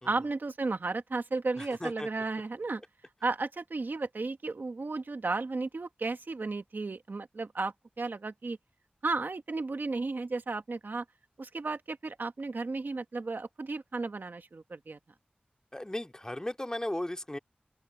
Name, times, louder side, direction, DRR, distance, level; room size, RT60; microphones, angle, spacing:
voice 1, 0.0-2.8 3.2-8.6 9.0-11.0 11.4-15.0, right 3 dB, 80° right, 1.5 m, -34 dB
voice 2, 1.6-2.1 15.7-17.4, left 1 dB, 20° left, 2.3 m, -36 dB
open air
wide cardioid pair, 60°, 3 cm